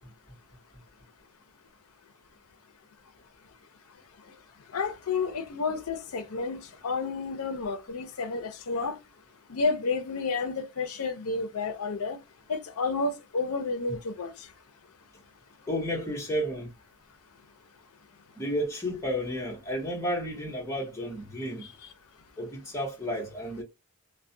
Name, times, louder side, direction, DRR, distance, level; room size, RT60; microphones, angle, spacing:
voice 1, 4.7-9.0 9.5-12.2 12.5-14.5 21.6-21.7, left 4 dB, 70° left, 0.5 m, -31 dB
voice 2, 15.7-16.7 18.4-21.7 22.4-23.6, equal, 15° left, 0.9 m, -32 dB
2.3 x 2.1 x 2.6 m
head